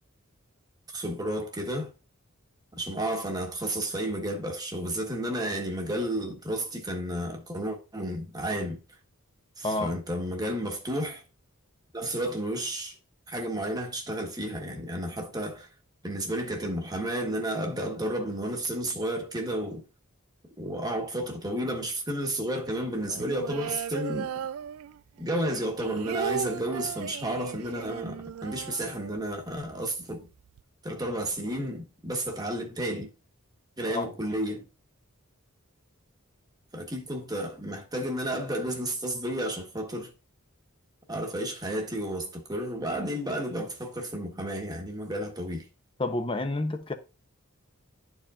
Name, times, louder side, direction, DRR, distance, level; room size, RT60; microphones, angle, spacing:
voice 1, 0.9-1.9 2.7-8.8 9.6-11.2 11.9-13.0 13.3-15.7 16.0-19.8 20.6-24.3 25.2-30.3 30.8-33.1 33.8-34.6 36.7-40.1 41.1-45.7, right 1 dB, 20° right, 1.2 m, -32 dB
voice 2, 9.6-9.9 33.9-34.1 46.0-46.9, left 2 dB, 25° left, 0.7 m, -29 dB
sound 1, 23.0-25.2 25.5-29.5 29.7-29.8 30.1-30.6, right 8 dB, 85° right, 0.3 m, -36 dB
11.5 x 4.7 x 2.5 m
head